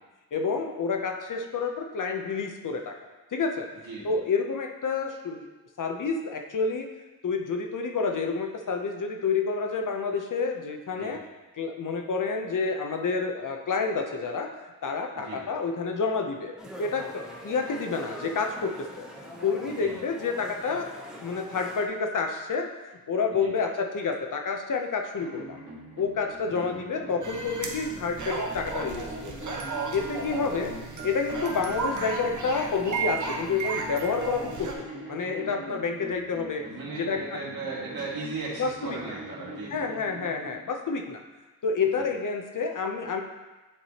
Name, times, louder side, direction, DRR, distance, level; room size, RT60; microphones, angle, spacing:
voice 1, 0.3-2.9 3.3-3.7 4.0-5.4 5.8-6.9 7.2-11.2 11.6-14.5 14.8-19.1 19.4-20.9 21.2-25.6 26.0-29.4 29.9-30.7 31.0-36.6 37.0-37.4 38.6-39.2 39.7-41.2 41.6-43.2, left 4 dB, 60° left, 3 dB, 0.7 m, -29 dB
voice 2, 3.8-4.2 10.9-11.2 15.2-15.4 19.6-20.0 23.3-23.5 26.5-26.7 36.7-39.9 41.9-42.1, right 3 dB, 80° right, -6 dB, 2.0 m, -37 dB
sound 1, 16.6-21.8, equal, ahead, 0.8 m, -43 dB
sound 2, 25.2-40.5, right 1 dB, 35° right, 2.0 m, -43 dB
sound 3, 27.2-34.7, right 4 dB, 55° right, 0.9 m, -34 dB
9.8 x 4.7 x 2.9 m, 1.2 s
wide cardioid pair, 175°, 35 cm